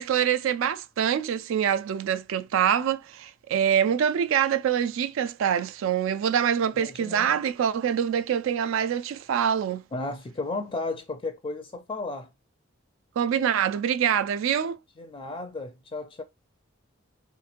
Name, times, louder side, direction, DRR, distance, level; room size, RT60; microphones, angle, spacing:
voice 1, 0.0-9.8 13.2-14.8, right 8 dB, 70° right, 0.3 m, -25 dB
voice 2, 6.7-7.4 9.9-12.3 15.0-16.2, left 3 dB, 25° left, 0.4 m, -34 dB
3.5 x 3.0 x 2.4 m
head